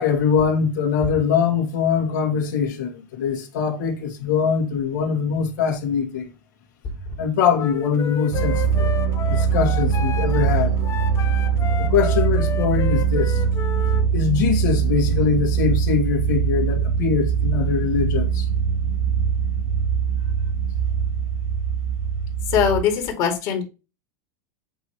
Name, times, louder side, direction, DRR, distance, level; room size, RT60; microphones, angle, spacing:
voice 1, 0.0-6.3 7.2-8.9 9.3-10.7 11.9-13.4 14.1-18.5, left 6 dB, 75° left, 2.3 m, -22 dB
Wind instrument woodwind instrument, 7.5-14.1, left 9 dB, 30° left, 0.7 m, -32 dB
sound 1, 8.3-22.8, right 7 dB, 55° right, 1.9 m, -22 dB
voice 2, 22.5-23.6, left 8 dB, 45° left, 2.4 m, -21 dB
8.0 x 3.2 x 4.5 m
supercardioid pair, 145°, 10 cm